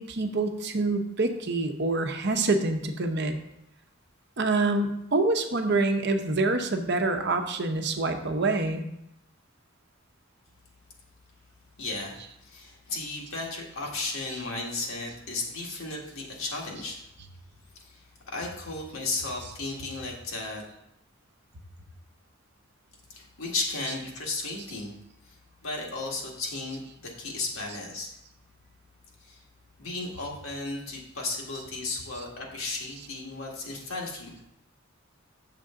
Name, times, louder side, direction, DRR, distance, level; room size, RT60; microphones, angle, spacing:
voice 1, 0.0-3.3 4.4-8.8, right 3 dB, 55° right, 5 dB, 0.9 m, -26 dB
voice 2, 11.8-17.1 17.7-20.6 23.1-24.9 25.2-25.4 25.6-28.1 29.2-29.4 29.8-34.3, left 3 dB, 85° left, -1 dB, 1.8 m, -35 dB
7.8 x 6.7 x 3.7 m, 0.80 s
head